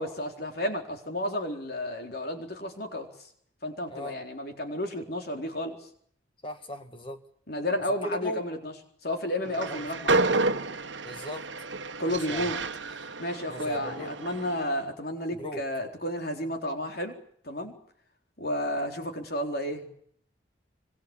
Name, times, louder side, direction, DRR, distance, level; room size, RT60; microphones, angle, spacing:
voice 1, 0.0-3.1 3.6-5.9 7.5-8.7 9.0-10.3 12.0-12.6 12.9-17.2 17.4-17.7 18.4-19.9, left 1 dB, 50° left, 4 dB, 4.1 m, -32 dB
voice 2, 6.4-7.2 8.0-8.4 9.7-9.8 11.0-11.4 12.1-12.5 13.5-14.1 15.4-15.6, equal, 25° left, 7 dB, 1.6 m, -37 dB
Train, 9.4-14.7, right 3 dB, 70° right, 1.5 m, -30 dB
26.0 x 25.0 x 7.1 m, 0.65 s
head